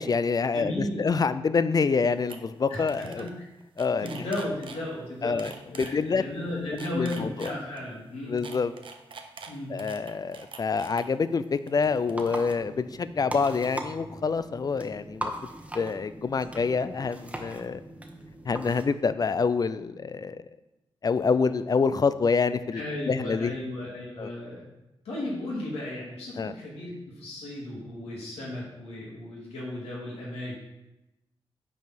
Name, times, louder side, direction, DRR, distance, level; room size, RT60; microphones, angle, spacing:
voice 1, 0.0-3.3 3.8-4.1 5.2-6.2 6.9-7.5 8.3-8.7 9.7-15.3 15.7-17.8 18.5-20.4 21.0-23.5 24.2-24.3 26.4-26.5, left 5 dB, 40° left, 14 dB, 0.4 m, -27 dB
voice 2, 0.5-1.0 2.7-3.5 4.0-8.4 9.5-9.7 22.7-24.6 25.0-30.6, left 1 dB, 90° left, -5 dB, 2.6 m, -35 dB
sound 1, 1.9-2.0 2.3-2.4 2.7-3.3 3.6-4.8 5.4-5.9 6.6-7.8 8.4-11.0 11.7-12.5, right 5 dB, 55° right, 0.8 m, -44 dB
sound 2, 11.7-18.8, right 1 dB, 15° right, 1.1 m, -40 dB
5.8 x 4.5 x 6.0 m, 0.97 s
cardioid pair, 65°, 10 cm